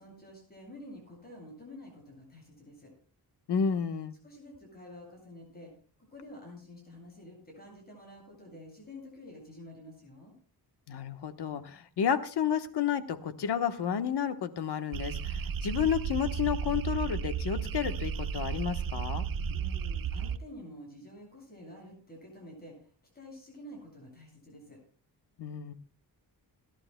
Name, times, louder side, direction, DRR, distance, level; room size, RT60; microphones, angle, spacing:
voice 1, 0.0-2.9 4.2-5.7 6.0-10.3 19.5-24.8, left 1 dB, 25° left, -1 dB, 8.0 m, -49 dB
voice 2, 3.5-4.1 10.9-19.2 25.4-25.7, left 8 dB, 90° left, 9 dB, 1.3 m, -31 dB
sound 1, 14.9-20.4, right 7 dB, 60° right, 0.8 m, -33 dB
30.0 x 12.0 x 2.2 m, 0.40 s
wide cardioid pair, 165°, 39 cm